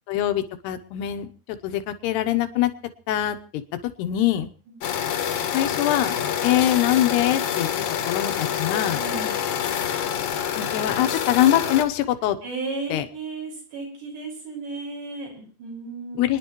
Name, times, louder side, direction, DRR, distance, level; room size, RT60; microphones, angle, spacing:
voice 1, 0.1-2.7 3.1-4.5 5.5-6.2 6.4-7.7 8.1-9.0 10.6-12.4 12.9-13.1 16.2-16.4, left 12 dB, 80° left, 9 dB, 3.1 m, -23 dB
sound 1, 4.8-11.8, left 9 dB, 65° left, 2.1 m, -27 dB
voice 2, 9.0-9.4 12.4-16.2, right 3 dB, 85° right, -2 dB, 7.8 m, -34 dB
30.0 x 10.5 x 3.1 m, 0.40 s
omnidirectional pair, 4.7 m